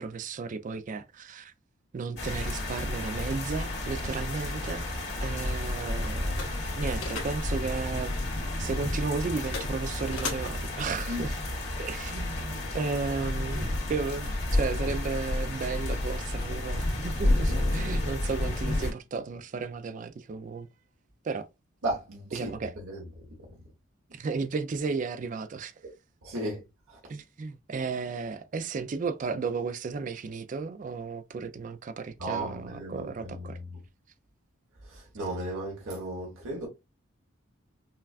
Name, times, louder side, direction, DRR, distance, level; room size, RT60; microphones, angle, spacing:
voice 1, 0.0-1.5 1.9-4.8 5.2-6.5 6.7-8.1 8.6-11.4 11.8-20.7 21.2-21.5 22.3-22.8 24.1-25.7 27.1-33.6, right 4 dB, 40° right, 0.3 m, -34 dB
sound 1, 2.2-18.9, left 1 dB, 55° left, 1.8 m, -31 dB
sound 2, 4.7-12.7, left 4 dB, 70° left, 1.4 m, -43 dB
voice 2, 21.8-22.5 22.8-23.0 26.2-26.6 26.9-27.0 32.2-33.8 34.9-36.7, right 1 dB, 85° right, 1.2 m, -35 dB
5.5 x 2.3 x 2.3 m
head